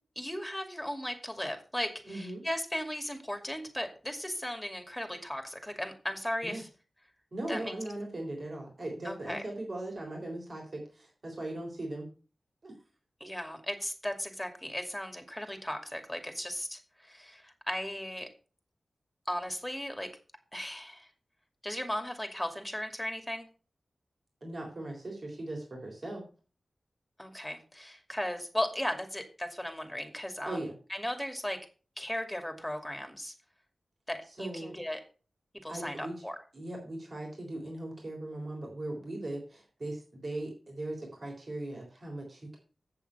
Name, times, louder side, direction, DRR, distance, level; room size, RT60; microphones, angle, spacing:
voice 1, 0.2-6.7 7.5-7.7 9.0-9.4 13.2-18.3 19.3-20.1 20.5-21.1 21.6-23.5 27.2-30.6 30.9-31.6 32.0-33.3 34.1-35.0 35.6-36.4, left 1 dB, 10° left, 6 dB, 2.5 m, -36 dB
voice 2, 2.1-2.4 6.4-6.6 7.3-12.1 12.6-12.7 24.4-26.2 30.5-30.7 34.3-34.8 35.7-36.2 36.5-42.6, right 1 dB, 55° right, -1 dB, 3.6 m, -39 dB
7.9 x 7.1 x 5.6 m, 0.36 s
cardioid pair, 55°, 0 cm